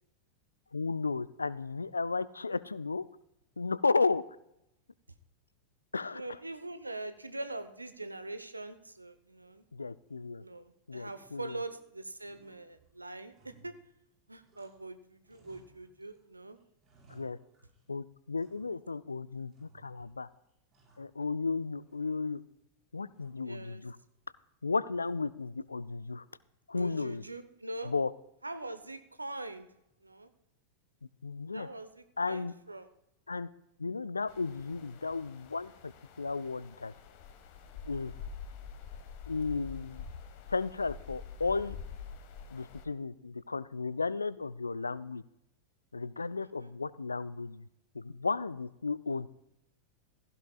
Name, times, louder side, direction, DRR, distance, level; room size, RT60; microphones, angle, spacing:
voice 1, 0.7-3.0 3.6-4.2 5.9-6.4 9.7-10.4 10.9-11.6 17.1-17.4 17.9-20.3 21.0-22.4 22.9-24.0 24.6-26.2 26.7-27.2 27.8-28.1 31.2-31.7 32.2-32.5 33.3-33.5 33.8-35.9 36.2-36.9 37.9-38.1 39.3-40.0 40.5-41.8 42.5-45.2 45.9-47.7 47.9-49.3, left 4 dB, 80° left, 19 dB, 0.4 m, -34 dB
voice 2, 6.1-9.6 10.4-13.7 14.3-16.6 23.4-23.8 26.7-27.9 28.4-29.7 30.0-30.3 31.5-32.9 46.6-46.7, right 2 dB, 85° right, 11 dB, 0.9 m, -43 dB
sound 1, 10.1-10.6 11.0-11.9 12.2-14.9 15.2-16.2 16.6-17.9 18.4-19.0 19.5-20.1 20.5-21.5 21.9-22.6 23.1-23.6 25.0-25.5, right 3 dB, 35° right, 5.5 m, -64 dB
sound 2, 34.3-42.9, left 6 dB, 45° left, 1.4 m, -46 dB
16.5 x 15.0 x 2.4 m, 0.84 s
figure-of-eight pair, 90°, 0 cm